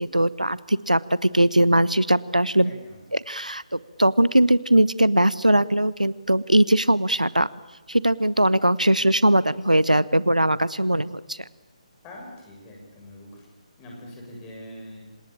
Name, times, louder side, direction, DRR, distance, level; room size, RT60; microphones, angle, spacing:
voice 1, 0.0-2.7 3.1-7.5 7.9-11.4, right 1 dB, 85° right, 19 dB, 0.8 m, -20 dB
voice 2, 2.6-3.1 12.0-13.5 13.8-15.1, left 1 dB, 15° left, -1 dB, 7.1 m, -43 dB
26.5 x 19.0 x 8.6 m, 1.1 s
figure-of-eight pair, 145°, 4 cm